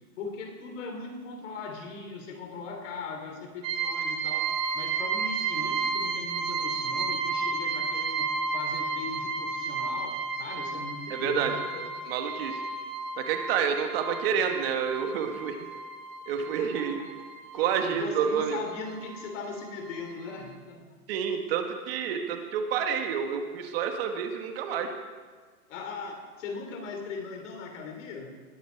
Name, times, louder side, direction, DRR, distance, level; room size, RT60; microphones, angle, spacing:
voice 1, 0.2-11.9 16.6-17.1 17.5-21.0 25.7-28.4, left 4 dB, 50° left, 4 dB, 3.2 m, -39 dB
sound 1, 3.6-17.9 18.2-19.3 19.6-19.7 20.1-20.2, right 4 dB, 20° right, 0.5 m, -32 dB
voice 2, 11.1-11.5 12.0-12.6 13.2-15.6 16.3-17.0 17.5-18.6 21.1-24.9, right 7 dB, 40° right, 5 dB, 1.5 m, -29 dB
20.0 x 9.5 x 4.6 m, 1.5 s
hypercardioid pair, 150°, 45 cm